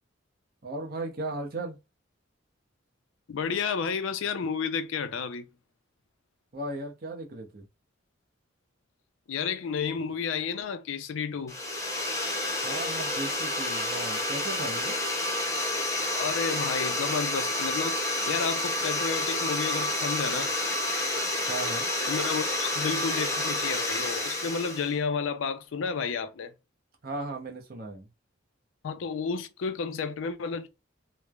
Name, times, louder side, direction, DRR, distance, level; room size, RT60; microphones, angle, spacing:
voice 1, 0.6-1.8 6.5-7.6 12.6-15.0 21.4-21.9 27.0-28.1, right 2 dB, 50° right, 0.7 m, -36 dB
voice 2, 3.3-5.5 9.3-11.6 16.1-20.5 22.1-26.5 28.8-30.7, left 5 dB, 85° left, 0.4 m, -31 dB
sound 1, 11.5-24.9, left 1 dB, 15° left, 0.6 m, -29 dB
3.1 x 2.0 x 2.3 m
head